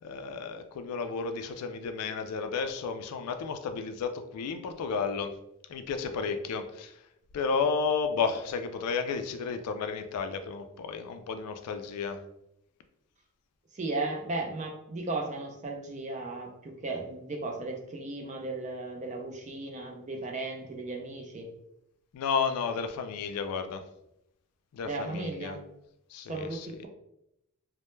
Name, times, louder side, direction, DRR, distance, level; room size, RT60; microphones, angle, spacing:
voice 1, 0.0-5.3 5.7-7.0 7.3-12.2 22.1-23.8 24.7-25.6 26.1-26.8, left 5 dB, 90° left, 8 dB, 0.3 m, -32 dB
voice 2, 13.7-21.5 24.8-25.6 26.3-26.9, right 2 dB, 30° right, 1 dB, 0.4 m, -35 dB
2.1 x 2.1 x 3.0 m, 0.81 s
head